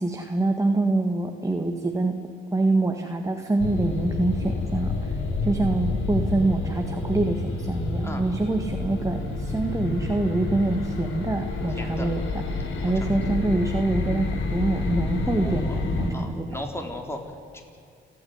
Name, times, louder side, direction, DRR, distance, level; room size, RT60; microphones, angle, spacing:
voice 1, 0.0-2.1 2.5-5.2 5.4-12.2 12.8-16.5, right 2 dB, 15° right, 4 dB, 1.7 m, -25 dB
sound 1, 3.6-16.1, left 3 dB, 80° left, 3.2 m, -29 dB
voice 2, 11.8-12.1 12.8-13.3 15.4-15.8 16.1-17.2 17.5-17.6, left 1 dB, 10° left, 3 dB, 4.1 m, -36 dB
29.5 x 9.9 x 9.6 m, 2.4 s
cardioid pair, 90°, 20 cm